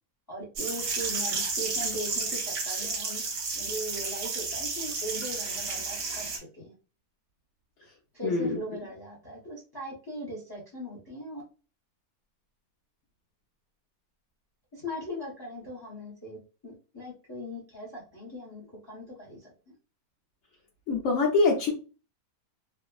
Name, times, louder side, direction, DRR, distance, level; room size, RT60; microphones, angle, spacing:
voice 1, 0.3-6.7 8.1-11.4 14.7-19.7, equal, 20° left, -3 dB, 0.7 m, -40 dB
sound 1, 0.6-6.4, right 4 dB, 70° right, 1.2 m, -32 dB
voice 2, 8.2-8.6 20.9-21.7, left 3 dB, 65° left, -3 dB, 0.9 m, -24 dB
3.4 x 2.0 x 2.3 m, 0.34 s
omnidirectional pair, 1.6 m